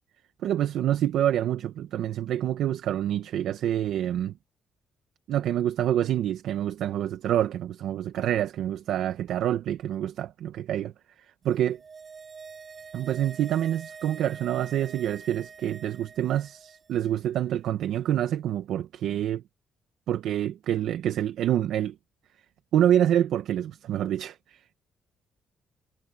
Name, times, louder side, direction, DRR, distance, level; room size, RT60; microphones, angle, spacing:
voice 1, 0.4-4.3 5.3-10.9 11.4-11.8 12.9-19.4 20.1-21.9 22.7-24.6, right 11 dB, 80° right, 1.1 m, -27 dB
sound 1, 11.5-17.0 17.3-17.4, right 5 dB, 40° right, 5.4 m, -45 dB
cardioid pair, 90°, 0 cm